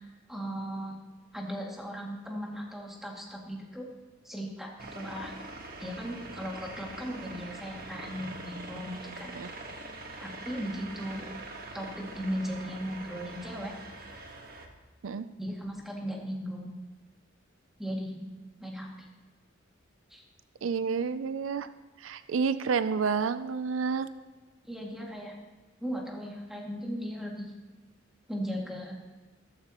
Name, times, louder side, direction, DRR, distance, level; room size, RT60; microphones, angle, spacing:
voice 1, 0.3-1.0 1.3-3.9 4.2-5.3 5.8-9.4 10.2-11.4 11.7-13.7 15.4-16.7 17.8-18.3 18.6-18.9 20.1-20.2 24.6-25.4 25.8-27.5 28.3-29.0, equal, ahead, -2 dB, 2.2 m, -37 dB
sound 1, 4.8-14.7, right 2 dB, 50° right, 1.4 m, -43 dB
voice 2, 20.6-21.7 22.0-24.1, right 5 dB, 75° right, 12 dB, 0.4 m, -29 dB
14.0 x 13.5 x 3.0 m, 1.3 s
head